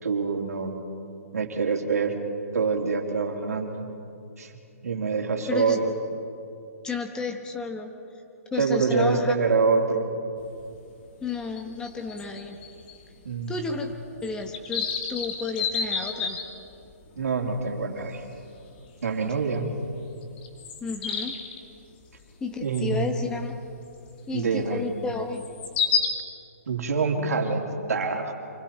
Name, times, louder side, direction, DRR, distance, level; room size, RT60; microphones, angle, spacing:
voice 1, 0.0-0.7 1.3-2.2 2.5-3.8 4.4-4.5 4.8-5.9 8.6-10.1 13.2-13.5 17.2-18.2 19.0-19.7 22.6-23.1 24.3-24.8 26.7-28.3, right 4 dB, 85° right, 2 dB, 3.0 m, -25 dB
voice 2, 5.5-5.8 6.8-7.9 8.5-9.3 11.2-12.6 13.5-13.9 14.2-16.4 20.8-21.3 22.4-23.6 24.3-25.4, left 4 dB, 10° left, 5 dB, 1.1 m, -32 dB
sound 1, 10.4-10.5 10.7-10.8 11.2-13.0 13.3-13.4 13.8-13.9 14.2-16.8 17.5-17.6 18.0-18.2 18.6-18.8 19.7-19.8 20.2-21.6 22.7-23.0 23.4-23.5 25.4-26.1, left 6 dB, 40° left, 2.4 m, -30 dB
29.5 x 25.0 x 4.4 m, 2.6 s
hypercardioid pair, 155°, 8 cm